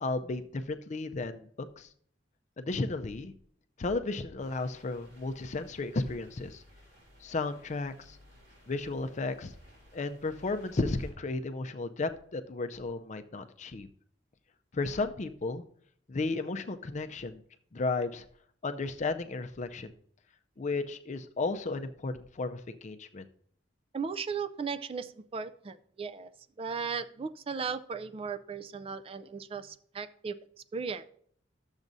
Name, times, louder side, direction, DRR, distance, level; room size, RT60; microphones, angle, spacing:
voice 1, 0.0-1.9 2.6-3.3 3.8-6.6 7.2-8.2 8.7-9.5 9.9-13.9 14.7-15.6 16.1-17.4 17.7-18.3 18.6-19.9 20.6-23.3, left 3 dB, 40° left, 10 dB, 0.5 m, -34 dB
sound 1, 4.4-11.1, equal, 70° right, 3.3 m, -58 dB
voice 2, 23.9-26.3 26.6-30.3 30.7-31.0, right 5 dB, 30° right, 11 dB, 0.4 m, -36 dB
12.0 x 7.2 x 2.6 m, 0.62 s
head